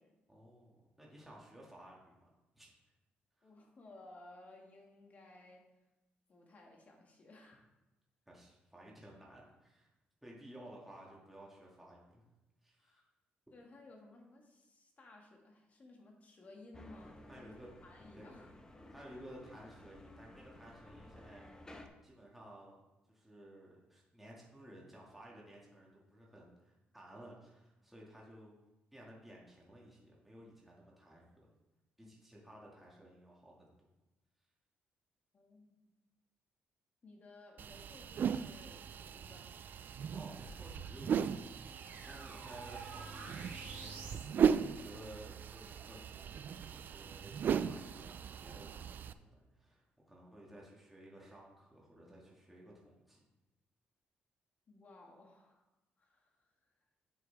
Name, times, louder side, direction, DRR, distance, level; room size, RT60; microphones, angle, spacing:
voice 1, 0.3-2.7 3.4-3.5 8.3-9.9 10.2-12.2 12.6-13.0 17.3-17.7 18.1-18.5 18.9-21.6 22.0-22.8 23.1-28.6 28.9-31.4 32.0-33.7 40.1-41.6 42.1-53.2, right 1 dB, 5° right, -4 dB, 2.2 m, -55 dB
voice 2, 3.4-5.7 6.3-7.7 12.8-13.0 13.5-17.5 17.8-18.5 35.3-35.9 37.0-39.5 54.7-55.6 56.0-56.5, left 2 dB, 40° left, 1 dB, 2.1 m, -58 dB
sound 1, 16.7-21.9, left 1 dB, 20° left, 1.0 m, -55 dB
sound 2, 37.6-49.1, right 7 dB, 55° right, 0.4 m, -37 dB
sound 3, 40.4-44.3, right 4 dB, 80° right, 3.2 m, -50 dB
8.5 x 7.9 x 3.5 m, 1.0 s
cardioid pair, 90°, 4 cm